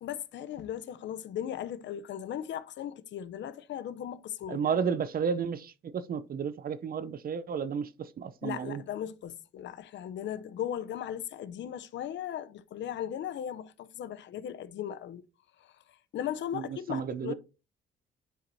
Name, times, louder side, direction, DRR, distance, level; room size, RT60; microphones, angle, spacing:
voice 1, 0.0-4.6 8.4-15.2 15.6-15.7 16.1-17.3, left 10 dB, 65° left, 0.6 m, -37 dB
voice 2, 4.5-8.8 16.5-17.3, right 6 dB, 50° right, 0.6 m, -32 dB
10.0 x 4.5 x 2.7 m
cardioid pair, 90°, 20 cm